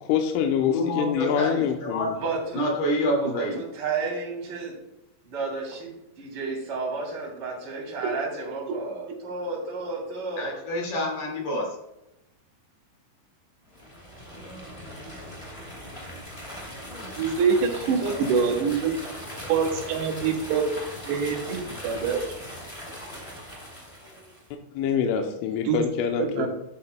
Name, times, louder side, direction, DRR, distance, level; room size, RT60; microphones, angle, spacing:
voice 1, 0.0-2.1 24.8-26.5, left 8 dB, 85° left, 3 dB, 3.2 m, -25 dB
voice 2, 0.6-2.2 2.5-3.6 10.4-11.8, equal, 60° left, -1 dB, 3.7 m, -27 dB
voice 3, 2.2-2.6 3.2-4.7 5.2-5.9 6.2-10.5 18.0-18.2, right 4 dB, 30° right, -2 dB, 3.0 m, -32 dB
sound 1, 13.7-24.5, equal, 25° left, 0.6 m, -39 dB
voice 4, 17.2-18.9 19.5-20.7 21.1-22.2 25.6-25.8 26.2-26.5, right 6 dB, 70° right, 3 dB, 3.0 m, -25 dB
11.5 x 9.8 x 2.2 m, 0.89 s
omnidirectional pair, 5.6 m